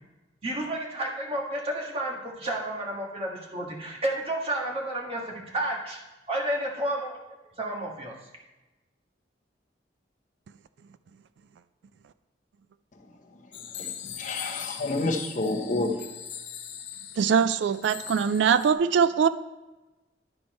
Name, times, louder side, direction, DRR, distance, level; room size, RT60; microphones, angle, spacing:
voice 1, 0.4-6.0 6.3-7.2 7.6-8.1, right 1 dB, 30° right, -2 dB, 1.6 m, -31 dB
sound 1, 13.5-18.7, left 9 dB, 85° left, 0.7 m, -41 dB
voice 2, 13.7-16.1, left 2 dB, 45° left, 3 dB, 0.9 m, -29 dB
voice 3, 17.2-19.3, right 6 dB, 80° right, 13 dB, 0.3 m, -22 dB
11.0 x 4.4 x 4.2 m, 1.1 s
head